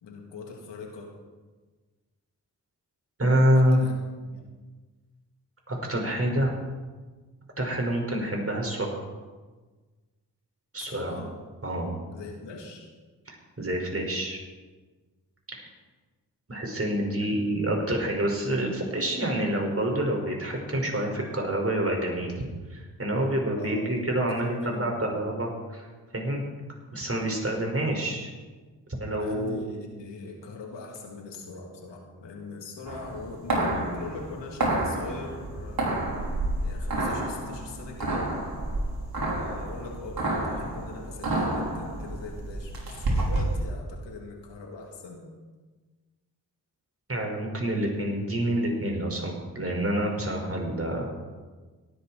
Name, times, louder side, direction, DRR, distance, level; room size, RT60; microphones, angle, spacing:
voice 1, 0.0-1.1 3.5-3.9 4.3-4.4 10.8-11.3 12.1-12.9 17.2-17.6 23.5-24.0 24.3-25.1 29.1-36.0 36.6-38.3 39.3-45.2, left 3 dB, 80° left, 0 dB, 3.1 m, -41 dB
voice 2, 3.2-3.9 5.7-6.5 7.6-9.0 10.7-11.1 11.6-11.9 13.3-14.4 15.5-15.7 16.5-22.3 22.7-25.9 26.1-26.4 26.9-28.3 29.0-29.6 47.1-51.1, right 1 dB, 35° right, 1 dB, 5.5 m, -27 dB
sound 1, 32.9-43.6, right 2 dB, 55° right, 4.3 m, -30 dB
18.0 x 11.5 x 4.4 m, 1.3 s
supercardioid pair, 40°, 42 cm